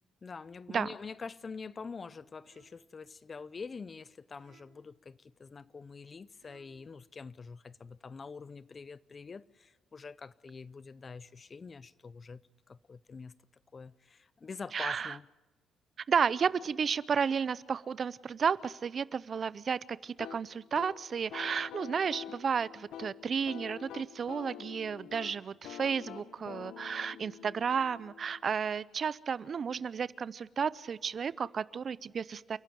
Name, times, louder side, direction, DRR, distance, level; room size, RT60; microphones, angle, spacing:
voice 1, 0.2-12.4 12.7-13.3 13.7-15.3, left 5 dB, 35° left, 0.6 m, -45 dB
sound 1, 2.4-3.0 4.4-5.0 6.4-7.0, right 8 dB, 80° right, 3.1 m, -66 dB
voice 2, 14.7-15.1 16.1-32.6, right 6 dB, 50° right, 0.6 m, -32 dB
sound 2, 20.2-28.8, left 9 dB, 90° left, 1.2 m, -47 dB
29.5 x 11.5 x 9.2 m
cardioid pair, 90°, 0 cm